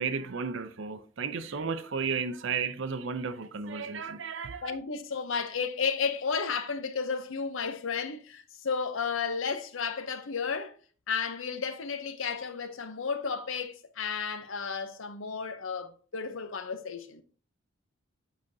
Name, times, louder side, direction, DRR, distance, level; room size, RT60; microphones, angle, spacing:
voice 1, 0.0-4.8, right 5 dB, 60° right, 0.5 m, -33 dB
voice 2, 4.6-10.8 11.1-17.2, left 5 dB, 65° left, 0.7 m, -33 dB
8.5 x 5.0 x 2.7 m
head